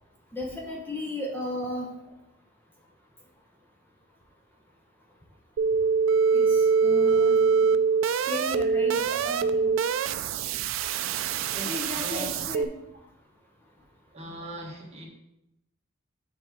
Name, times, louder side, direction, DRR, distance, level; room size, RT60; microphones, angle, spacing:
voice 1, 0.3-1.9 6.3-7.4 8.3-9.7 11.7-12.7, left 1 dB, 10° left, -1 dB, 0.8 m, -35 dB
sound 1, 5.6-12.6, right 5 dB, 85° right, 0.3 m, -24 dB
voice 2, 7.3-7.8 8.9-9.3 11.5-12.4 14.1-15.1, right 1 dB, 35° right, -2 dB, 1.4 m, -40 dB
6.6 x 3.5 x 5.9 m, 0.88 s
head